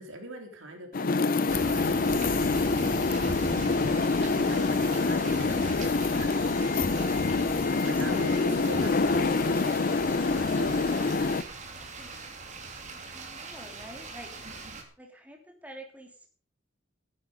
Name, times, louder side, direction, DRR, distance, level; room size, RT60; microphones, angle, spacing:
voice 1, 0.0-2.5 4.2-5.7 6.2-6.4 7.8-11.4, right 1 dB, 75° right, 4 dB, 3.8 m, -41 dB
sound 1, 0.9-11.4, left 3 dB, 45° left, 0.6 m, -26 dB
sound 2, 1.5-14.8, right 2 dB, 40° right, 2.7 m, -39 dB
voice 2, 3.5-4.1 6.8-7.3 7.5-7.7 8.0-8.5 11.7-12.1 12.8-14.3 15.0-16.3, equal, 10° right, 2 dB, 3.2 m, -47 dB
14.5 x 11.0 x 5.3 m, 0.40 s
head